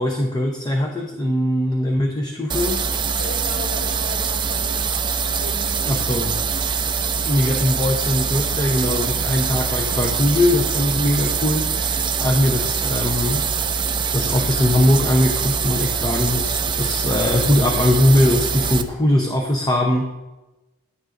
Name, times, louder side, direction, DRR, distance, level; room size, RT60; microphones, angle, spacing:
voice 1, 0.0-2.8 5.8-6.4 7.2-13.4 14.1-20.1, left 1 dB, 20° left, 2 dB, 0.7 m, -20 dB
sound 1, 2.5-18.8, right 6 dB, 20° right, 0.4 m, -23 dB
voice 2, 3.2-6.0, left 1 dB, 75° left, -1 dB, 2.2 m, -37 dB
sound 2, 6.9-9.3 9.6-11.4 11.6-12.7 13.0-14.1 14.3-14.8 15.0-16.8, left 3 dB, 50° left, 0.7 m, -40 dB
11.0 x 9.4 x 2.5 m, 1.1 s
head